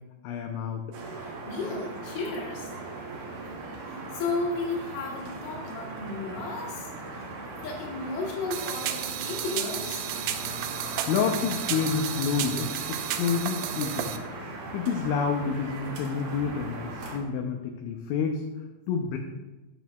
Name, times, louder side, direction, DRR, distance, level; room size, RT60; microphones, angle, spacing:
voice 1, 0.2-0.9 11.1-14.1 14.7-18.4 18.9-19.2, left 6 dB, 80° left, 2 dB, 2.8 m, -29 dB
sound 1, 0.9-17.2, right 2 dB, 65° right, 2.6 m, -39 dB
voice 2, 1.4-2.7 3.8-7.3 7.6-10.1, left 3 dB, 55° left, -4 dB, 2.8 m, -34 dB
sound 2, 8.5-14.2, right 11 dB, 85° right, 2.6 m, -33 dB
17.0 x 6.2 x 2.3 m, 1.1 s
omnidirectional pair, 5.7 m